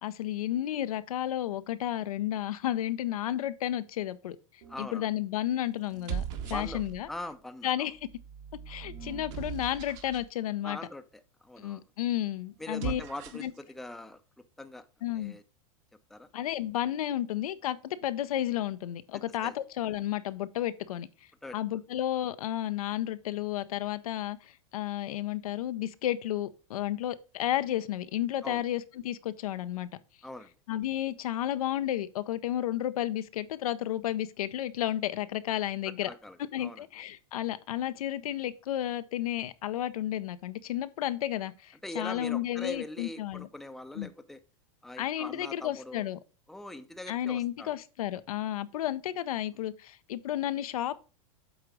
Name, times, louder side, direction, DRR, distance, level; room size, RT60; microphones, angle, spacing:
voice 1, 0.0-4.4 4.8-7.1 7.6-7.9 8.7-10.8 11.6-13.0 13.4-13.5 15.0-15.4 16.3-21.1 21.5-29.9 30.7-36.1 36.5-43.5 44.0-44.1 45.0-46.2 47.1-51.0, left 12 dB, 85° left, 0.6 m, -32 dB
sound 1, 4.6-5.0 5.8-7.2 7.9-10.3 12.6-13.6, right 8 dB, 55° right, 1.5 m, -39 dB
voice 2, 4.7-5.1 6.4-6.8 7.1-7.9 10.6-11.9 12.6-14.2 14.6-14.9 15.2-15.4 16.1-16.3 19.1-19.6 21.4-21.6 28.4-28.6 30.2-30.5 36.0-36.8 41.8-44.4 44.8-46.1 46.5-47.7, left 1 dB, ahead, 0.5 m, -42 dB
8.0 x 3.9 x 4.8 m
supercardioid pair, 125°, 18 cm